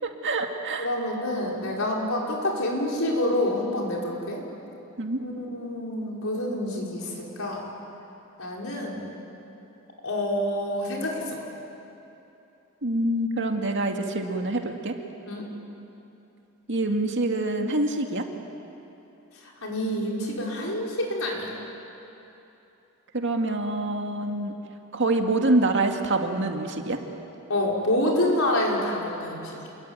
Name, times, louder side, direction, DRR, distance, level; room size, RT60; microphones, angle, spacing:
voice 1, 0.0-0.9 5.0-5.2 12.8-14.9 16.7-18.2 23.1-24.5 24.9-27.0, right 2 dB, 55° right, 3 dB, 2.2 m, -26 dB
voice 2, 0.8-4.4 5.2-7.6 8.4-9.1 10.0-11.4 15.3-15.4 19.6-21.5 27.5-29.7, left 1 dB, 70° left, -2 dB, 5.4 m, -27 dB
28.0 x 23.0 x 9.1 m, 2.9 s
head